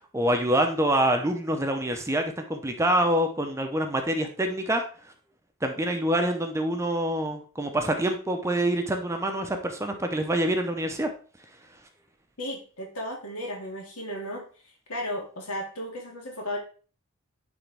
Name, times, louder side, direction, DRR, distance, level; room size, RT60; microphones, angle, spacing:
voice 1, 0.1-5.1 5.6-11.1, right 1 dB, 15° right, 5 dB, 0.6 m, -26 dB
voice 2, 12.4-14.4 14.9-16.6, left 1 dB, 75° left, 0 dB, 2.1 m, -34 dB
10.0 x 3.5 x 3.4 m, 0.39 s
head